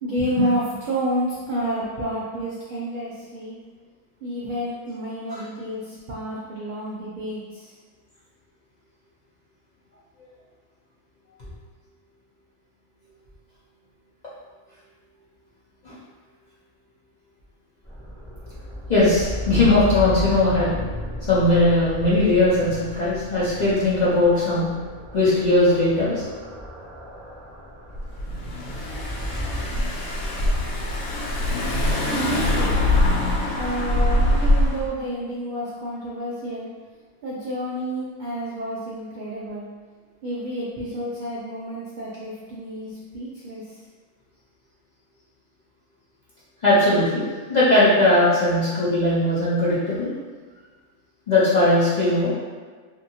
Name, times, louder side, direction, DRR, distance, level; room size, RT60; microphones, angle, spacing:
voice 1, 0.0-3.6 4.2-5.8 6.1-7.4 32.0-32.8 33.6-36.7 37.2-39.6 40.2-43.6, equal, 80° right, -6 dB, 0.4 m, -29 dB
sound 1, 17.8-29.6, equal, 10° left, 1.4 m, -34 dB
voice 2, 18.9-20.7 21.3-24.7 25.1-26.2 46.6-47.2 47.5-50.1 51.3-52.3, left 2 dB, 45° left, -10 dB, 0.6 m, -19 dB
Car / Engine, 27.9-34.9, left 1 dB, 70° left, 0.9 m, -23 dB
2.7 x 2.6 x 2.7 m, 1.5 s
omnidirectional pair, 1.5 m